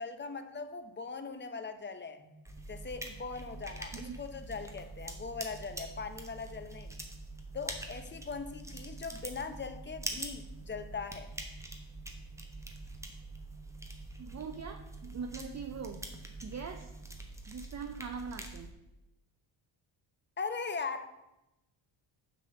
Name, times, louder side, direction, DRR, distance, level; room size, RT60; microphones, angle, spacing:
voice 1, 0.0-2.2 2.7-7.0 7.5-11.3 20.4-21.1, left 4 dB, 25° left, 9 dB, 0.7 m, -40 dB
sound 1, 2.2-17.2, right 1 dB, 75° left, 1.7 m, -56 dB
sound 2, 2.5-18.7, right 2 dB, 5° right, 1.0 m, -45 dB
voice 2, 14.2-16.1 16.4-16.9 17.5-18.7, right 5 dB, 35° right, 5 dB, 0.6 m, -42 dB
7.3 x 4.1 x 6.6 m, 0.93 s
cardioid pair, 105°, 48 cm